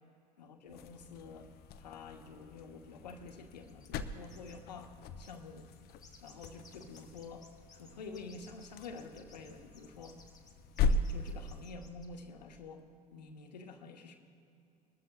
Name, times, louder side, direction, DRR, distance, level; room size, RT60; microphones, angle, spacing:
voice 1, 0.4-1.5 1.8-5.6 6.2-10.2 10.8-12.8 13.1-14.2, left 4 dB, 85° left, 5 dB, 1.1 m, -49 dB
sound 1, 0.7-11.8, left 3 dB, 50° left, 0.7 m, -39 dB
sound 2, 3.6-4.0 4.3-4.6 4.8-4.9 5.2-12.1, left 4 dB, 20° left, 1.9 m, -60 dB
21.0 x 12.5 x 2.4 m, 2.6 s
hypercardioid pair, 75°, 21 cm